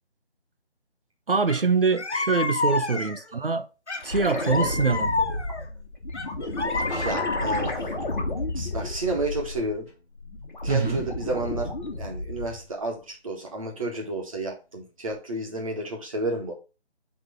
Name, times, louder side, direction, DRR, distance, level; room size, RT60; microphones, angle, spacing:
voice 1, 1.3-3.7 4.0-5.2 10.7-11.0, right 4 dB, 55° right, 0.7 m, -24 dB
sound 1, 1.5-1.6 1.9-3.3 3.9-5.6 6.1-7.9, left 3 dB, 90° left, 1.2 m, -29 dB
sound 2, 4.0-9.8 10.2-12.7 15.1-15.2, left 2 dB, 45° left, 1.9 m, -32 dB
sound 3, 6.9-7.5 9.6-9.9 10.6-11.2, equal, 5° right, 2.5 m, -45 dB
voice 2, 7.0-7.8 8.6-9.9 10.6-11.7 12.0-16.5, right 2 dB, 30° right, 1.8 m, -31 dB
7.9 x 3.7 x 3.7 m
figure-of-eight pair, 160°, 33 cm